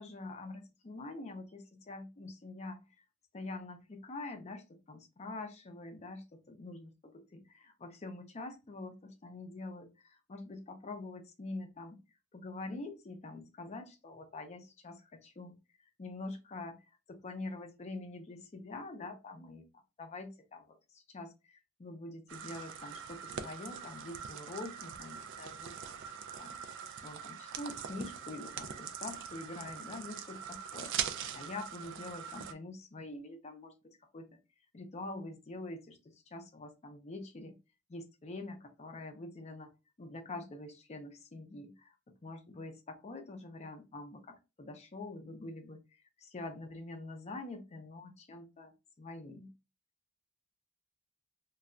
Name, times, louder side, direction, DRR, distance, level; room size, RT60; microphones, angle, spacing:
voice 1, 0.0-2.8 3.3-12.0 12.3-15.5 16.0-16.8 17.1-26.0 26.4-30.9 31.3-34.4 34.7-37.6 37.9-39.7 40.0-41.9 42.2-49.5, left 2 dB, 30° left, 6 dB, 0.5 m, -45 dB
sound 1, 22.3-32.5, right 8 dB, 55° right, 0.3 m, -42 dB
2.3 x 2.1 x 3.6 m, 0.28 s
head